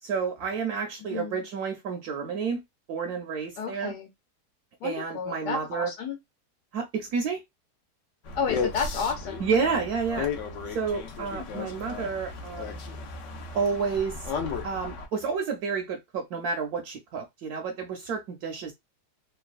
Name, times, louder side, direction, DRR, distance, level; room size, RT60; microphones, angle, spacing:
voice 1, 0.0-2.6 2.9-3.9 4.8-5.9 6.7-7.4 9.4-10.3 10.7-12.8 13.5-18.7, right 5 dB, 70° right, 1.0 m, -30 dB
voice 2, 1.1-1.4 3.6-4.1 4.8-6.2 8.4-9.5 11.5-11.7, left 6 dB, 80° left, 1.2 m, -32 dB
sound 1, 8.2-15.1, left 5 dB, 65° left, 0.7 m, -34 dB
3.0 x 2.2 x 2.4 m
omnidirectional pair, 1.8 m